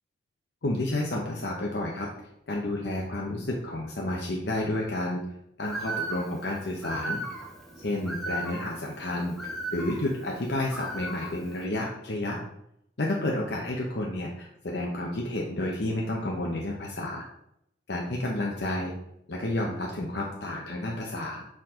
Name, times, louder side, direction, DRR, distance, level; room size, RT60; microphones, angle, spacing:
voice 1, 0.6-2.1 2.5-5.2 5.6-7.2 7.8-9.4 9.7-12.4 13.0-17.3 17.9-18.9 19.3-21.5, left 1 dB, 60° left, -2 dB, 0.8 m, -30 dB
Bird, 5.6-11.6, right 1 dB, ahead, 1.0 m, -37 dB
6.0 x 4.6 x 3.7 m, 0.77 s
head